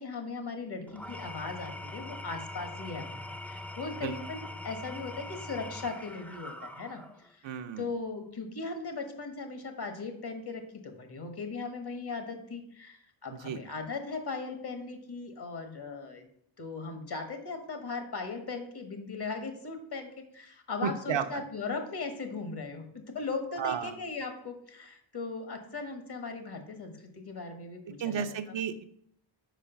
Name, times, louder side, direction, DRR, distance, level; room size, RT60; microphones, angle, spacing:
voice 1, 0.0-7.5 7.8-16.3 16.6-28.6, left 4 dB, 50° left, 6 dB, 1.6 m, -38 dB
Engine / Tools, 0.9-7.3, left 1 dB, 5° left, 0.4 m, -42 dB
voice 2, 7.4-7.9 13.4-13.6 20.8-21.4 23.6-24.0 28.0-28.8, right 8 dB, 65° right, 8 dB, 0.7 m, -33 dB
5.1 x 4.9 x 5.7 m, 0.69 s
cardioid pair, 70°, 47 cm